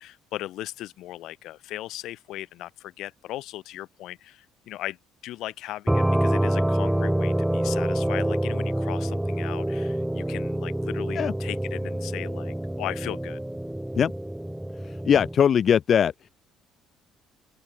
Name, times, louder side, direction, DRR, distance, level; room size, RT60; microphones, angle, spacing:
voice 1, 0.0-5.0 5.2-13.4, left 15 dB, 60° left, 2.5 m, -37 dB
sound 1, 5.9-15.4, right 1 dB, 5° right, 2.4 m, -26 dB
voice 2, 14.8-16.1, left 8 dB, 35° left, 0.9 m, -20 dB
open air
cardioid pair, 170°, 0 cm